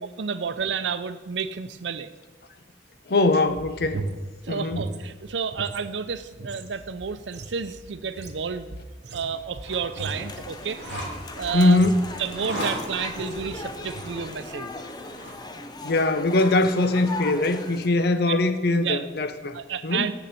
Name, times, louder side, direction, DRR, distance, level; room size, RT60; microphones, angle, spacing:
voice 1, 0.2-2.1 4.4-8.7 9.1-10.8 11.4-11.8 12.2-14.7 18.3-18.4 18.8-19.0 19.5-20.1, right 6 dB, 85° right, 12 dB, 0.6 m, -30 dB
voice 2, 3.1-4.0 4.5-4.8 11.5-12.0 15.8-20.1, left 2 dB, 60° left, 10 dB, 0.7 m, -22 dB
sound 1, 3.5-5.8 6.1-12.8 13.2-13.5 13.8-14.2, right 2 dB, 65° right, 0.9 m, -38 dB
sound 2, 9.6-15.4, equal, 90° left, 3.4 m, -39 dB
sound 3, 10.0-17.9, left 2 dB, 25° left, 0.6 m, -37 dB
7.2 x 6.8 x 7.7 m, 1.2 s
head